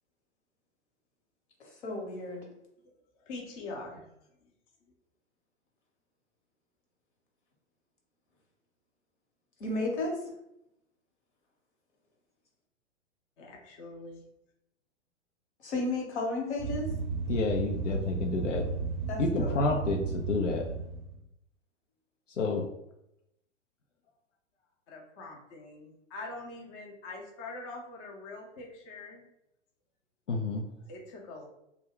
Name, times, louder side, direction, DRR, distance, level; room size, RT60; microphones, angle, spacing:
voice 1, 1.6-2.4 9.6-10.2 15.6-16.9 19.1-19.6, left 2 dB, 65° left, 0 dB, 1.1 m, -33 dB
voice 2, 3.3-4.1 13.4-14.2 24.9-29.3 30.9-31.5, left 2 dB, 25° left, 0 dB, 0.5 m, -43 dB
sound 1, 16.6-21.2, right 5 dB, 40° right, 0.5 m, -34 dB
voice 3, 17.3-18.6 19.2-20.6 22.4-22.6 30.3-30.6, left 3 dB, 80° left, 0 dB, 0.5 m, -29 dB
2.2 x 2.1 x 3.6 m, 0.83 s
figure-of-eight pair, 105°, 36 cm